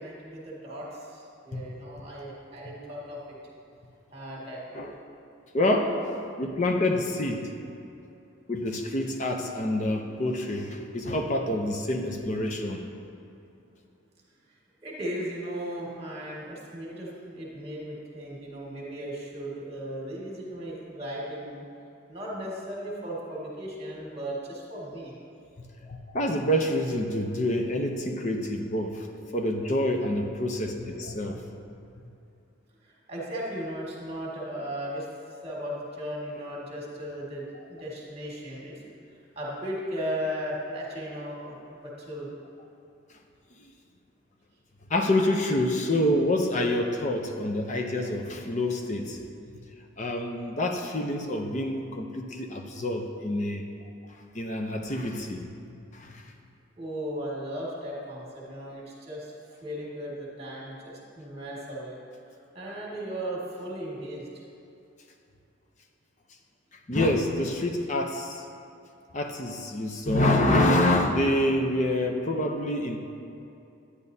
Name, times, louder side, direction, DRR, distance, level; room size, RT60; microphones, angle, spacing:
voice 1, 0.0-3.4 4.1-4.9 14.8-21.7 22.1-25.2 32.8-38.9 39.4-42.4 56.8-59.3 59.6-62.0 62.5-64.2, equal, 30° right, -4 dB, 1.8 m, -36 dB
voice 2, 5.5-6.0 6.4-7.5 8.5-12.9 25.8-29.1 29.3-31.4 44.9-49.2 50.0-53.7 54.3-55.5 55.9-56.2 66.9-68.5 69.1-73.0, left 1 dB, 35° left, 3 dB, 0.6 m, -27 dB
10.5 x 9.7 x 2.7 m, 2.7 s
head